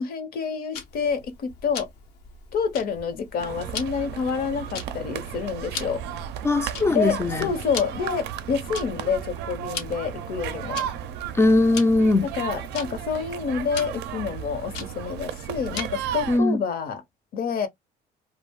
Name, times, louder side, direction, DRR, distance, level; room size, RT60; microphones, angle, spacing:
voice 1, 0.0-1.9 2.5-6.0 6.9-10.9 12.2-17.0 17.3-17.7, left 6 dB, 60° left, 0.8 m, -28 dB
Tick-tock, 0.7-16.2, left 6 dB, 90° left, 0.8 m, -41 dB
sound 1, 3.4-16.4, right 10 dB, 80° right, 0.4 m, -34 dB
voice 2, 6.4-7.5 11.3-12.3 16.3-16.6, left 2 dB, 15° left, 0.3 m, -20 dB
2.4 x 2.0 x 3.4 m
cardioid pair, 110°, 17 cm